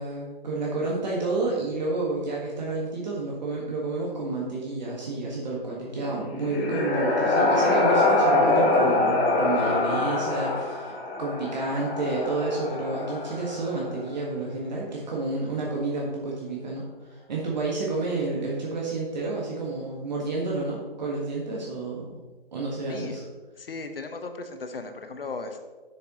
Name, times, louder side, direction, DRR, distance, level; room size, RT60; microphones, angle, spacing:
voice 1, 0.0-10.9 11.2-22.1 22.5-23.2, right 3 dB, 45° right, -3 dB, 1.6 m, -30 dB
sound 1, 6.1-13.9, left 2 dB, 10° left, 0.7 m, -24 dB
voice 2, 23.6-25.7, left 3 dB, 70° left, 7 dB, 1.2 m, -36 dB
10.5 x 7.0 x 3.0 m, 1.3 s
figure-of-eight pair, 155°, 30 cm